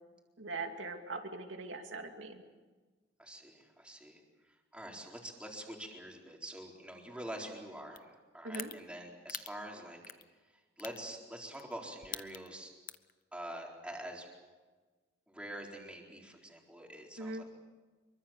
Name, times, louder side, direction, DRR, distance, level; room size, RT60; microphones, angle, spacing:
voice 1, 0.4-2.4 8.4-8.7 17.2-17.4, right 3 dB, 80° right, 4 dB, 2.6 m, -41 dB
voice 2, 3.2-4.2 4.5-10.0 10.5-12.7 13.3-14.3 15.3-17.4, right 1 dB, 5° right, -1 dB, 4.1 m, -46 dB
sound 1, 8.0-8.1 8.5-8.7 9.3-9.5 10.0-10.2 10.8-11.0 11.5-11.7 12.0-12.5 12.9-13.1, left 11 dB, 45° left, 0.8 m, -41 dB
25.5 x 23.5 x 7.3 m, 1.3 s
head